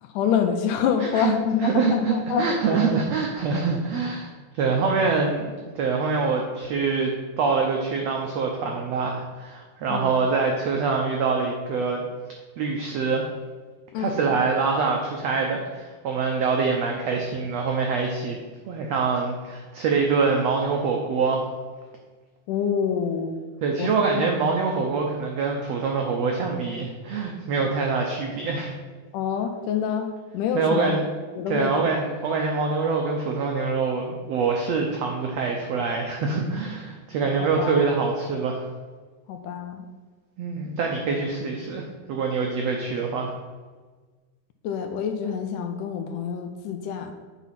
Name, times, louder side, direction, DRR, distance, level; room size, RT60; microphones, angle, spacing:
voice 1, 0.0-2.8 9.9-10.2 13.9-14.2 22.5-23.4 23.8-24.3 29.1-30.9 31.4-31.9 37.4-37.9 39.3-39.9 44.6-47.1, left 7 dB, 80° left, 6 dB, 2.1 m, -27 dB
voice 2, 1.0-1.3 1.6-12.0 12.6-13.2 14.0-18.4 18.7-21.4 23.6-28.7 30.5-31.0 31.5-38.6 40.4-43.3, right 4 dB, 85° right, 1 dB, 1.4 m, -25 dB
9.2 x 4.1 x 5.7 m, 1.4 s
omnidirectional pair, 4.0 m